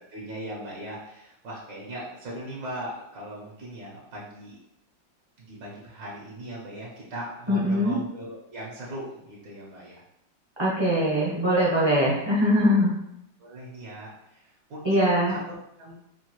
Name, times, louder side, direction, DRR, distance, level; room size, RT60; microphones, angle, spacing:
voice 1, 0.1-4.6 5.4-10.0 13.4-15.9, right 1 dB, 75° right, -4 dB, 1.6 m, -39 dB
voice 2, 7.5-7.9 10.6-13.0 14.8-15.3, equal, 30° right, -7 dB, 0.5 m, -22 dB
5.6 x 2.4 x 3.0 m, 0.80 s
omnidirectional pair, 2.1 m